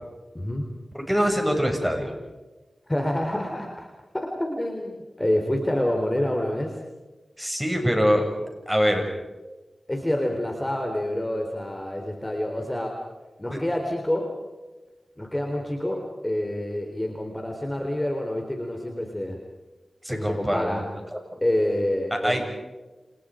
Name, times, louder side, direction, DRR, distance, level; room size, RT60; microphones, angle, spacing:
voice 1, 0.3-0.7 2.9-3.9 4.1-6.8 9.9-13.0 13.4-14.3 15.2-19.4 20.1-20.8 21.4-22.5, left 1 dB, 20° left, 2 dB, 3.8 m, -27 dB
voice 2, 0.9-2.1 7.4-8.3 8.7-9.0 13.5-13.6 20.0-20.9 21.1-21.2 22.2-22.5, equal, 5° right, 3 dB, 7.0 m, -23 dB
29.5 x 28.0 x 5.1 m, 1.2 s
cardioid pair, 50°, 0 cm